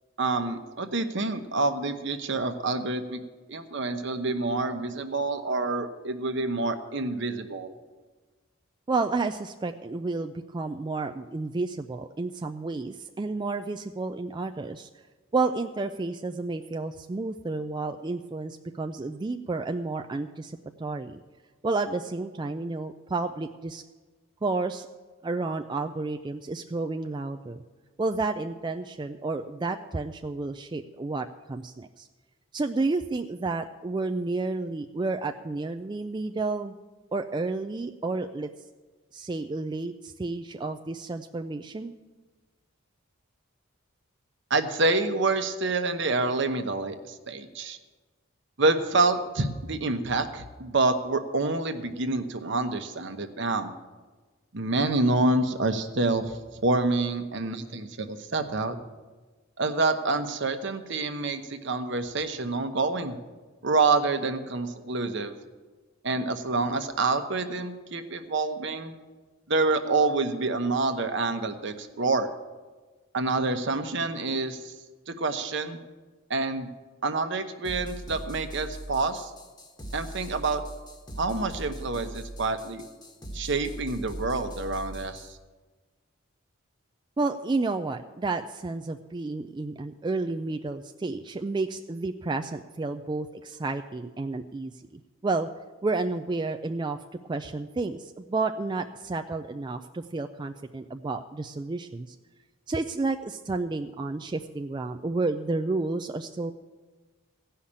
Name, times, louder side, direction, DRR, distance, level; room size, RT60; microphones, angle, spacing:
voice 1, 0.2-3.2 3.5-7.7 44.5-47.8 48.6-53.7 54.5-56.4 56.6-58.8 59.6-63.2 63.6-65.3 66.0-68.9 69.5-72.3 73.1-74.7 75.1-75.8 76.3-76.7 77.0-79.3 79.9-80.6 81.2-82.8 83.3-85.3, right 3 dB, 60° right, 7 dB, 1.0 m, -27 dB
voice 2, 8.9-14.9 15.3-21.2 21.6-23.8 24.4-24.9 25.2-27.6 28.0-32.1 32.5-36.7 37.1-38.5 39.1-41.9 87.2-95.5 95.8-97.0 97.3-102.2 102.7-106.5, right 3 dB, 20° right, 5 dB, 0.3 m, -31 dB
sound 1, 77.6-85.3, right 1 dB, 20° left, 1.2 m, -40 dB
16.0 x 5.7 x 8.6 m, 1.3 s
head